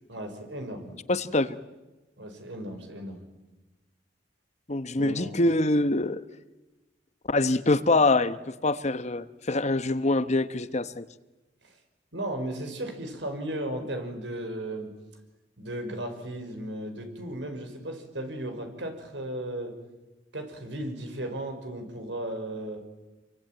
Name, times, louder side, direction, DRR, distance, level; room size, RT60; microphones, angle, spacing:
voice 1, 0.1-1.0 2.2-3.2 4.9-5.4 11.6-11.8 12.1-14.9 15.6-19.7 20.3-22.8, right 1 dB, 85° right, 6 dB, 5.6 m, -35 dB
voice 2, 1.1-1.6 4.7-6.2 7.3-11.1, left 2 dB, 40° left, 13 dB, 1.0 m, -25 dB
27.0 x 24.0 x 9.1 m, 1.1 s
head